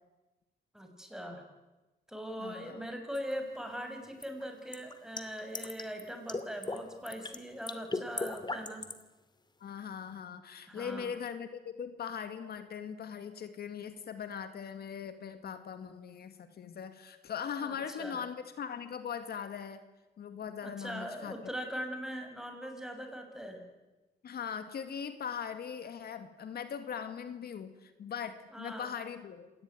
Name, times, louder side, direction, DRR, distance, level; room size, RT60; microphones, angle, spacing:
voice 1, 0.7-1.4 2.1-8.9 10.7-11.2 17.6-18.2 20.6-23.6 28.5-28.9, equal, 5° right, 4 dB, 6.4 m, -41 dB
voice 2, 2.4-2.9 9.6-19.8 20.2-21.3 24.2-29.5, left 7 dB, 65° left, 9 dB, 2.1 m, -40 dB
sound 1, 3.1-3.3 4.2-6.0 6.3-6.8 7.1-7.4 7.7-9.0, left 3 dB, 25° left, 2.5 m, -37 dB
26.5 x 19.0 x 9.4 m, 1.1 s
cardioid pair, 85°, 17 cm